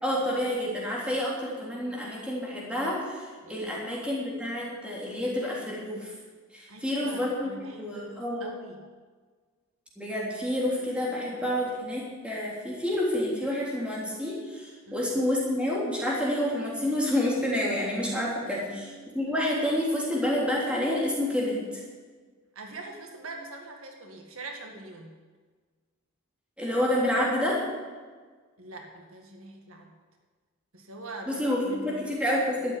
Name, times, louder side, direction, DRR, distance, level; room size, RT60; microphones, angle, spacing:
voice 1, 0.0-3.2 3.5-6.1 6.5-8.5 10.0-21.6 26.6-27.6 31.3-32.8, left 1 dB, 5° right, -5 dB, 3.5 m, -28 dB
voice 2, 3.4-3.8 6.7-8.8 14.9-15.0 18.5-19.0 22.6-25.1 28.6-29.9 30.7-32.0, right 2 dB, 70° right, 3 dB, 1.9 m, -43 dB
13.0 x 8.6 x 9.8 m, 1.5 s
head